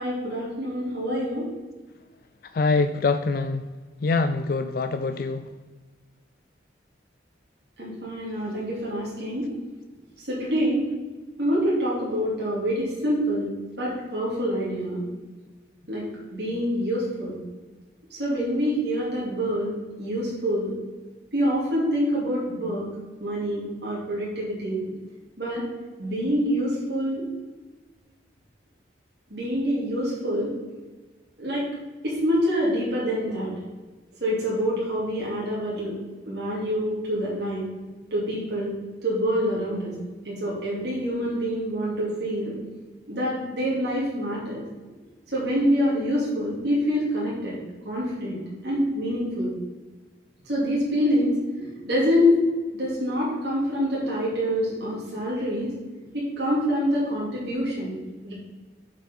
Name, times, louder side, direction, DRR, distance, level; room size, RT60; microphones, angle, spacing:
voice 1, 0.0-1.4 7.8-9.4 10.3-10.9 11.4-13.5 13.8-15.0 15.9-16.1 16.3-17.4 18.1-20.7 21.3-22.8 23.2-24.8 25.4-25.6 26.0-27.2 29.3-30.5 31.4-31.6 32.0-33.5 34.2-35.9 36.3-37.6 38.1-38.7 39.0-39.9 40.2-42.5 43.1-44.6 45.3-47.5 47.8-48.4 48.6-49.5 50.5-51.4 51.8-52.4 52.7-55.7 56.1-57.9 58.2-58.3, equal, 60° right, -6 dB, 2.7 m, -26 dB
voice 2, 2.5-3.6 4.0-5.5, left 3 dB, 50° left, 8 dB, 0.3 m, -24 dB
7.2 x 5.2 x 5.4 m, 1.3 s
head